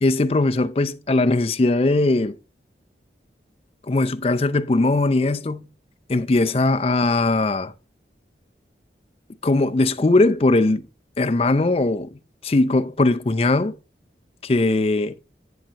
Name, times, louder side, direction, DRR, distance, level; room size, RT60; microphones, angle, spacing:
voice 1, 0.0-2.4 3.9-5.7 6.1-7.7 9.4-10.9 11.2-13.7 14.4-15.1, left 2 dB, 35° left, 0.5 m, -20 dB
10.5 x 8.6 x 2.9 m
head